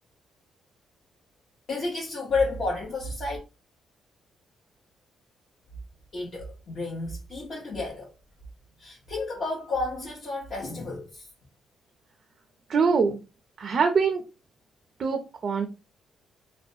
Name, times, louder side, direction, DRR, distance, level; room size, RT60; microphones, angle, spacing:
voice 1, 1.7-3.4 6.1-8.1 8.8-11.3, left 3 dB, 50° left, 0.9 m, -31 dB
voice 2, 12.7-13.2 13.6-14.3 15.0-15.7, right 5 dB, 50° right, 0.4 m, -23 dB
2.4 x 2.1 x 2.6 m
cardioid pair, 90°, 0 cm